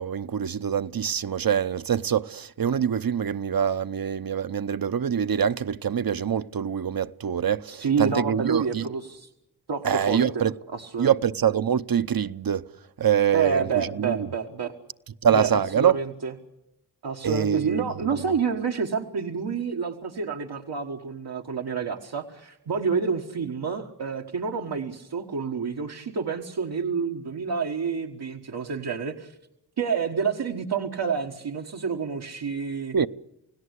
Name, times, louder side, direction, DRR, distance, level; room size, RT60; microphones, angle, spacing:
voice 1, 0.0-8.9 9.8-10.5 11.0-12.6 13.0-14.3 15.2-16.0 17.2-17.8 32.9-33.1, right 8 dB, 60° right, 0.8 m, -24 dB
voice 2, 7.7-9.3 9.7-10.4 10.7-11.1 13.3-14.7 15.3-16.3 17.0-29.3 29.8-32.9, right 5 dB, 85° right, 1.6 m, -29 dB
29.5 x 17.5 x 8.2 m
cardioid pair, 45°, 39 cm